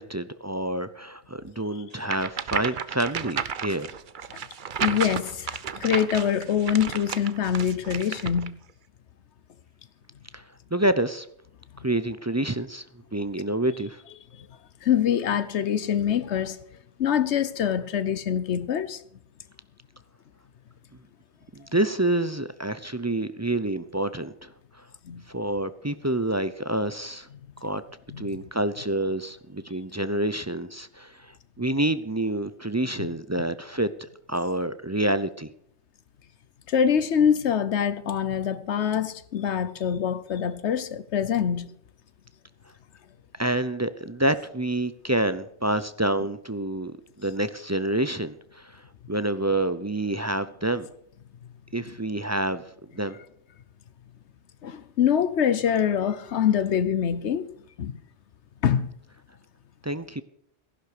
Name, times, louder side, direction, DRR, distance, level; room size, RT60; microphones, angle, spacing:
voice 1, 0.0-3.9 10.3-10.4 10.7-11.3 11.8-12.8 13.1-14.0 21.5-24.5 25.3-27.3 27.6-27.8 28.2-33.9 34.3-35.5 43.4-48.8 49.1-50.9 51.7-52.6 52.9-53.2 59.8-60.2, right 1 dB, 20° right, 0.5 m, -27 dB
sound 1, 2.0-8.5, right 7 dB, 50° right, 0.9 m, -32 dB
voice 2, 4.8-8.5 14.8-16.6 17.0-19.0 25.0-25.2 28.1-28.3 36.7-41.7 54.6-57.5 57.8-58.0 58.6-58.9, left 8 dB, 80° left, 1.1 m, -24 dB
15.5 x 11.0 x 6.7 m
omnidirectional pair, 1.1 m